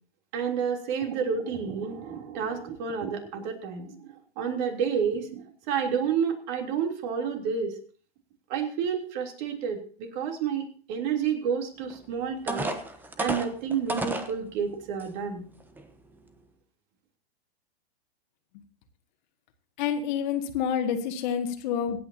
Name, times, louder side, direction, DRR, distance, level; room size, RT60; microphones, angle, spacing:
voice 1, 0.3-7.8 8.5-12.7 13.2-15.4, right 7 dB, 45° right, 3 dB, 3.2 m, -30 dB
sound 1, 11.9-12.0 12.5-14.3 15.0-15.1 15.6-15.8, right 2 dB, 5° right, 1.1 m, -31 dB
voice 2, 19.8-22.0, left 8 dB, 45° left, 5 dB, 2.1 m, -28 dB
25.0 x 9.1 x 2.8 m, 0.42 s
hypercardioid pair, 135°, 32 cm